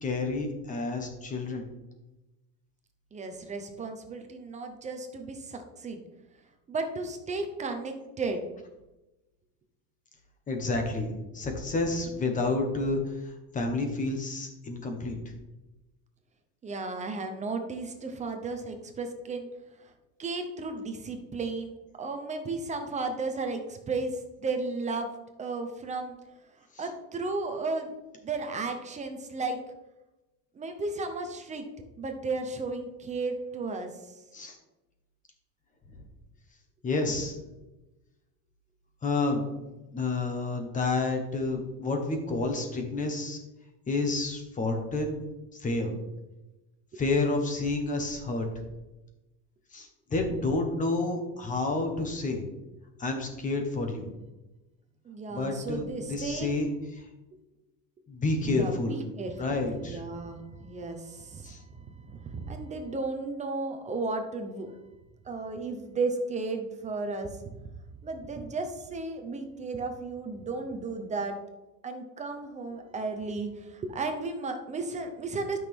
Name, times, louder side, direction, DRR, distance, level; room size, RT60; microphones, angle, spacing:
voice 1, 0.0-1.6 10.5-11.1 11.3-15.2 26.7-26.8 34.3-34.6 36.8-37.4 39.0-39.4 39.9-43.4 43.9-45.2 45.6-45.9 46.9-48.5 49.7-52.4 53.0-54.1 55.3-56.7 57.0-57.1 58.1-59.0 59.4-60.0 61.4-61.6, left 3 dB, 20° left, 4 dB, 1.3 m, -29 dB
voice 2, 3.1-6.0 6.7-8.4 16.6-19.5 19.8-19.9 20.2-21.7 22.0-25.1 25.4-26.2 26.5-27.9 28.2-29.6 30.5-31.7 32.0-34.2 46.9-47.0 55.0-56.5 58.4-64.8 65.2-67.4 68.0-71.4 71.8-75.6, right 3 dB, 20° right, 5 dB, 0.8 m, -34 dB
12.0 x 6.1 x 3.6 m, 1.0 s
cardioid pair, 170°, 40 cm